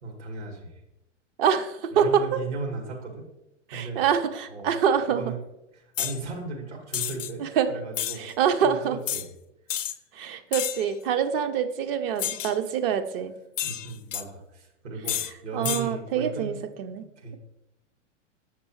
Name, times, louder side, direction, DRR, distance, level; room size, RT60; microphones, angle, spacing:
voice 1, 0.0-0.7 2.0-3.3 3.7-4.0 4.5-4.7 5.2-5.4 5.7-8.3 8.6-9.3 13.6-16.6 17.0-17.4, right 3 dB, 65° right, 1 dB, 2.0 m, -36 dB
voice 2, 1.4-2.2 3.7-5.2 7.4-7.7 8.2-9.0 10.2-13.3 15.5-17.1, right 8 dB, 50° right, 9 dB, 0.7 m, -25 dB
sound 1, 6.0-6.2 6.9-7.3 7.9-8.2 9.1-9.3 9.7-10.0 10.5-10.9 12.2-12.6 13.6-14.2 15.1-15.3 15.6-15.9, left 10 dB, 80° left, 0.5 m, -30 dB
7.4 x 6.0 x 3.1 m, 0.88 s
hypercardioid pair, 105°, 37 cm